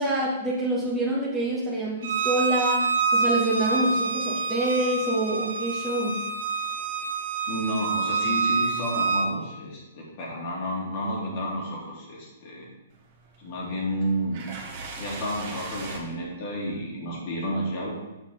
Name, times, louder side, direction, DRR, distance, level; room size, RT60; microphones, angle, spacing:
voice 1, 0.0-6.1, right 2 dB, 5° left, -8 dB, 1.5 m, -26 dB
Bowed string instrument, 2.0-9.3, right 4 dB, 80° right, 0.8 m, -27 dB
voice 2, 7.5-12.7 13.4-14.5 15.0-17.9, equal, 50° left, -4 dB, 2.7 m, -31 dB
sound 1, 12.9-16.0, right 3 dB, 45° right, 1.7 m, -40 dB
6.5 x 6.1 x 4.2 m, 1.0 s
hypercardioid pair, 140°, 0 cm